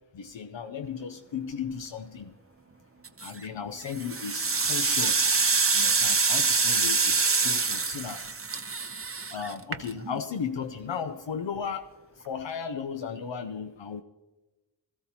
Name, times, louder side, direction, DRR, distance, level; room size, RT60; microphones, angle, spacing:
voice 1, 0.1-2.3 3.2-5.3 5.7-8.2 9.3-11.9 12.3-14.0, left 6 dB, 85° left, 7 dB, 0.7 m, -35 dB
sound 1, 3.0-3.4 3.9-10.2, right 4 dB, 30° right, 0.8 m, -25 dB
17.5 x 14.5 x 2.9 m, 1.1 s
wide cardioid pair, 70°, 44 cm